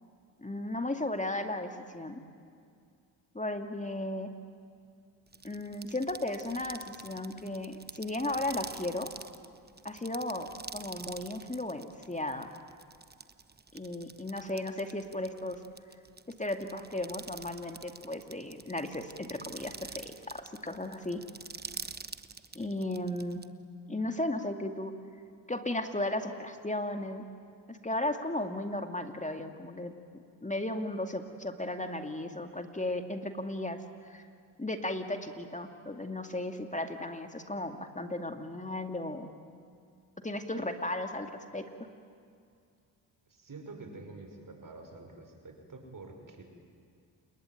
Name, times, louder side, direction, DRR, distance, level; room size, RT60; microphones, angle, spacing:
voice 1, 0.4-2.2 3.3-4.3 5.4-9.1 9.8-12.5 13.7-15.6 16.3-21.2 22.5-23.4 23.9-24.9 25.5-27.2 27.7-29.9 30.4-34.2 34.6-39.3 40.2-41.7, left 1 dB, 15° left, 6 dB, 2.3 m, -35 dB
sound 1, 5.3-23.5, right 4 dB, 20° right, 1.1 m, -46 dB
voice 2, 43.3-46.4, right 3 dB, 40° right, 4 dB, 5.7 m, -47 dB
29.0 x 20.5 x 9.3 m, 2.3 s
supercardioid pair, 55°, 47 cm